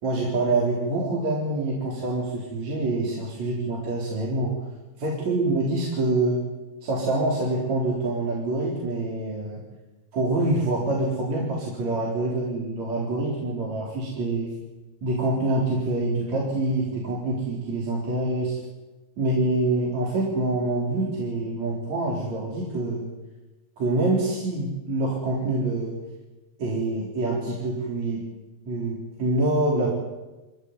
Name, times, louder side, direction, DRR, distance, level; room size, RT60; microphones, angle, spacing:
voice 1, 0.0-4.5 5.0-6.4 6.8-9.6 10.1-14.5 15.0-18.6 19.2-23.1 23.8-26.0 26.6-28.2 28.7-29.9, right 2 dB, 40° right, -3 dB, 4.9 m, -26 dB
27.0 x 16.0 x 9.8 m, 1.1 s
omnidirectional pair, 5.3 m